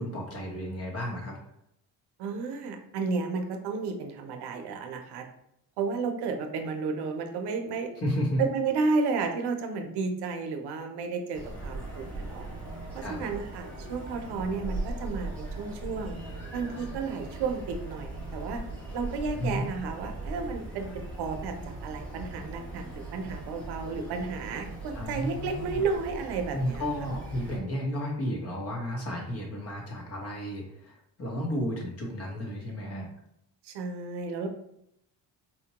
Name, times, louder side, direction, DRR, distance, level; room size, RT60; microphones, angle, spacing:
voice 1, 0.0-1.3 8.0-8.4 13.0-13.2 19.4-19.6 24.9-25.8 26.5-33.1, equal, 40° left, -1 dB, 1.0 m, -33 dB
voice 2, 2.2-5.2 5.8-7.9 8.4-12.5 12.9-16.2 16.5-18.6 18.9-21.5 21.8-26.8 33.6-34.5, right 4 dB, 80° right, 5 dB, 0.6 m, -32 dB
sound 1, 11.3-27.6, right 2 dB, 5° left, 0.8 m, -39 dB
4.3 x 2.2 x 2.8 m, 0.77 s
cardioid pair, 155°, 39 cm